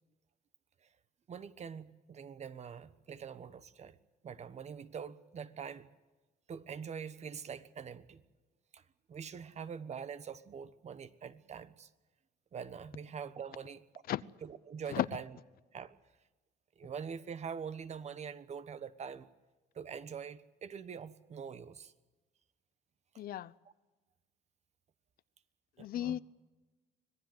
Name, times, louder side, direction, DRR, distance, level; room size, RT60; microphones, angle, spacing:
voice 1, 1.3-4.0 4.2-5.9 6.5-8.2 8.7-8.8 9.1-11.9 12.5-13.8 14.5-15.2 15.7-16.0 16.8-19.3 19.7-21.9 25.8-26.2, right 7 dB, 40° right, 1.2 m, -44 dB
voice 2, 23.2-23.5 25.8-26.2, left 12 dB, 60° left, 0.7 m, -34 dB
25.5 x 19.0 x 7.8 m
cardioid pair, 110°, 17 cm